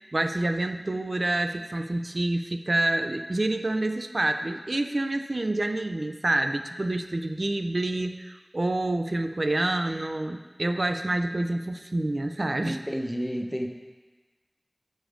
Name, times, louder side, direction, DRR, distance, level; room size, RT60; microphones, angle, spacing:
voice 1, 0.1-12.8, right 2 dB, 80° right, 7 dB, 0.4 m, -27 dB
voice 2, 12.6-13.7, equal, ahead, 3 dB, 0.8 m, -31 dB
7.6 x 5.2 x 5.0 m, 1.3 s
wide cardioid pair, 40°, 0 cm